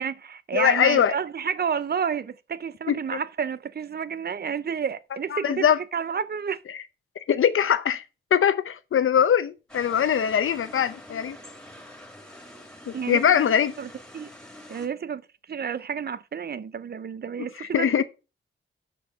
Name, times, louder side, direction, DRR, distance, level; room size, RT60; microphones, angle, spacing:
voice 1, 0.0-6.6 12.9-13.2 13.8-14.3 14.7-15.2 15.5-18.0, right 7 dB, 50° right, 0.6 m, -30 dB
voice 2, 0.5-1.1 2.9-3.2 5.3-5.8 6.7-6.8 7.3-8.0 8.3-11.4 12.9-13.7 17.6-18.0, left 8 dB, 75° left, 0.7 m, -22 dB
sound 1, 9.7-14.9, left 1 dB, 5° left, 2.2 m, -46 dB
6.4 x 5.3 x 6.4 m
wide cardioid pair, 115°, 21 cm